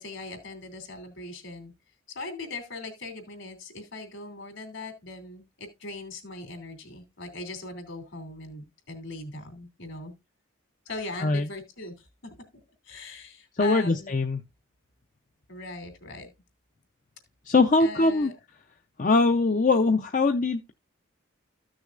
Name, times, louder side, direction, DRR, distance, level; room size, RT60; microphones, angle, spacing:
voice 1, 0.0-1.7 2.1-10.1 10.9-12.1 12.8-14.1 15.5-16.3 17.8-18.3, left 2 dB, 70° left, 3.0 m, -40 dB
voice 2, 13.5-14.4 17.4-18.3 19.0-20.7, left 3 dB, 40° left, 0.6 m, -22 dB
14.5 x 6.3 x 2.5 m
head